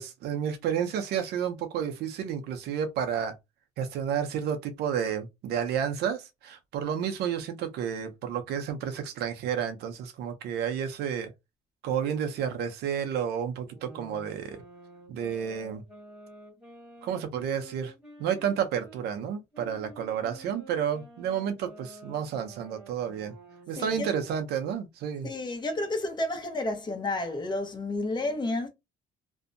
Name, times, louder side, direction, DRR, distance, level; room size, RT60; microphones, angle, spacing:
voice 1, 0.0-3.3 3.8-11.3 11.8-14.6 15.1-15.8 17.0-17.9 18.2-23.3 23.7-25.3, right 8 dB, 75° right, 0.5 m, -31 dB
sound 1, 13.6-19.0 19.5-24.4, right 2 dB, 5° right, 1.3 m, -50 dB
voice 2, 23.8-24.1 25.2-28.7, left 2 dB, 25° left, 0.8 m, -31 dB
2.6 x 2.1 x 2.5 m
cardioid pair, 110°, 17 cm